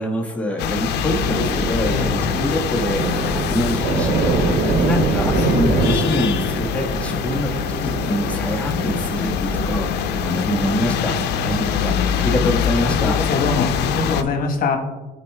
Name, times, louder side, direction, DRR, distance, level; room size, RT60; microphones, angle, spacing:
voice 1, 0.0-11.2 11.4-13.2, equal, 5° left, -2 dB, 1.2 m, -25 dB
sound 1, 0.6-14.2, left 7 dB, 80° left, 0.6 m, -24 dB
Thunder / Rain, 1.1-13.9, right 3 dB, 85° right, 1.1 m, -26 dB
voice 2, 5.3-5.8 11.0-12.1 12.9-14.8, left 5 dB, 60° left, 5 dB, 1.1 m, -25 dB
12.0 x 4.6 x 3.3 m, 1.1 s
cardioid pair, 110°, 17 cm